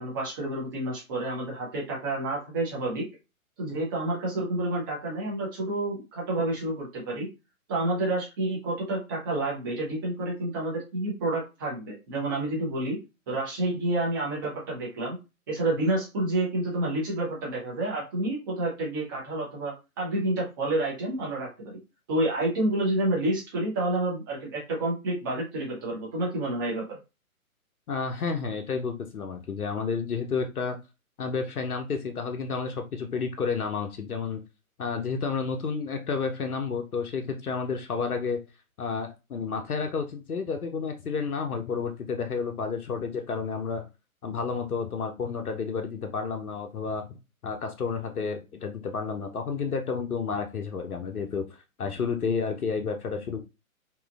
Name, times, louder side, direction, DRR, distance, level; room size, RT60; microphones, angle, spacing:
voice 1, 0.0-3.0 3.6-7.3 7.7-13.0 13.3-15.2 15.5-21.8 22.1-27.0, right 2 dB, 15° right, -4 dB, 0.6 m, -29 dB
voice 2, 27.9-30.8 31.2-34.4 34.8-38.4 38.8-43.9 44.2-47.1 47.4-51.5 51.8-53.4, left 5 dB, 85° left, 4 dB, 0.6 m, -31 dB
2.9 x 2.3 x 2.3 m, 0.28 s
figure-of-eight pair, 125°, 43 cm